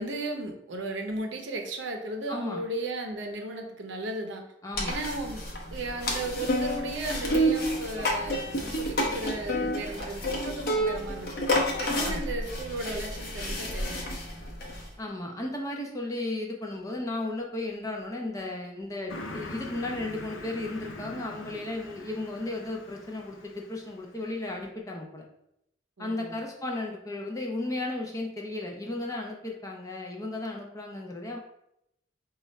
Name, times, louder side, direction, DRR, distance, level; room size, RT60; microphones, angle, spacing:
voice 1, 0.0-4.4 4.8-5.4 5.7-11.5 11.8-14.2 26.0-26.4, right 2 dB, 70° right, 3 dB, 0.6 m, -35 dB
voice 2, 2.3-2.6 4.6-5.0 11.9-12.2 15.0-25.3 26.0-31.4, left 2 dB, 15° left, 0 dB, 0.4 m, -34 dB
sound 1, 4.7-14.9, equal, 50° left, 0.7 m, -30 dB
Car passing by, 19.1-24.1, left 1 dB, 90° left, 0.5 m, -42 dB
5.2 x 2.3 x 3.1 m, 0.80 s
head